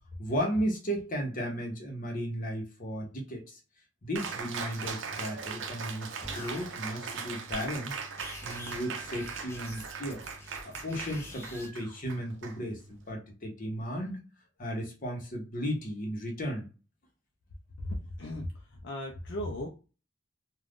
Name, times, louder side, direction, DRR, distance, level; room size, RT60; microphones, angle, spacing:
voice 1, 0.2-3.6 4.0-8.0 8.4-10.2 10.6-14.2 14.6-16.7, equal, 45° left, 1 dB, 0.9 m, -35 dB
Cheering, 4.2-13.1, right 5 dB, 70° right, 0.5 m, -40 dB
sound 1, 6.2-6.7 7.5-7.8 8.1-11.7, left 1 dB, 15° left, 0.6 m, -46 dB
voice 2, 17.8-18.5 18.8-19.7, left 1 dB, 65° left, 0 dB, 0.5 m, -36 dB
2.5 x 2.3 x 3.5 m, 0.33 s
head